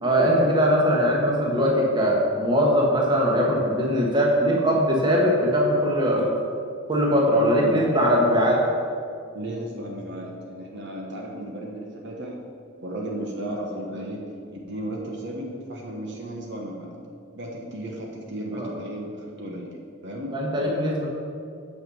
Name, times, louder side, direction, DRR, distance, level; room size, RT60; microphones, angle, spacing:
voice 1, 0.0-6.3 6.9-8.6 18.5-18.7 20.3-21.1, equal, 20° right, -2 dB, 1.5 m, -21 dB
voice 2, 9.3-12.4 12.8-14.2 14.5-16.9 17.3-19.8 20.0-20.3, right 1 dB, 55° right, -1 dB, 1.3 m, -34 dB
9.2 x 5.7 x 7.0 m, 2.4 s
head